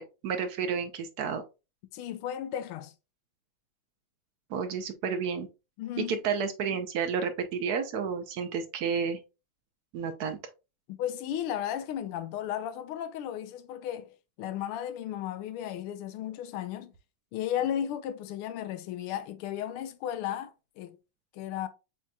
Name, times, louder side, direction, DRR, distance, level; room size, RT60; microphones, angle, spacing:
voice 1, 0.0-1.4 4.5-5.5 6.0-9.2 9.9-10.4, right 6 dB, 70° right, 0.9 m, -31 dB
voice 2, 1.9-2.9 5.8-6.2 10.9-16.9 17.3-21.0 21.3-21.7, left 10 dB, 90° left, 1.5 m, -34 dB
7.3 x 2.9 x 2.3 m
omnidirectional pair, 2.3 m